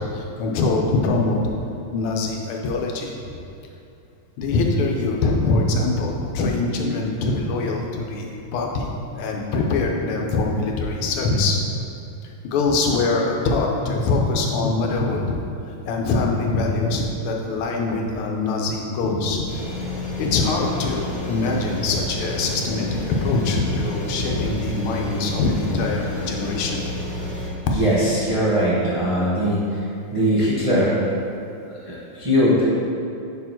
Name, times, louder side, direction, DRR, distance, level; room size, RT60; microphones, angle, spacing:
voice 1, 0.0-1.4 1.9-3.1 4.4-11.6 12.4-15.4 15.9-19.5 20.2-26.8, left 3 dB, 80° left, 0 dB, 1.6 m, -23 dB
sound 1, 19.5-27.5, left 1 dB, 50° left, 1.7 m, -30 dB
voice 2, 27.7-29.8 30.1-31.0 31.7-32.6, equal, 55° right, -8 dB, 0.3 m, -20 dB
5.9 x 4.6 x 4.4 m, 2.7 s
omnidirectional pair, 2.4 m